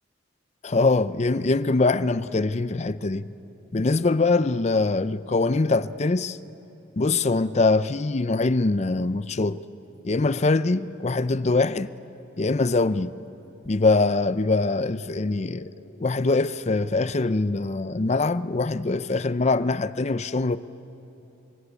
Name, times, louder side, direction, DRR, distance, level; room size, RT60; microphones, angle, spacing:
voice 1, 0.6-3.3 3.7-6.4 7.0-9.6 10.0-11.9 12.4-13.1 13.6-15.7 16.0-20.6, left 3 dB, 35° left, 0.5 m, -23 dB
26.5 x 23.0 x 8.3 m
head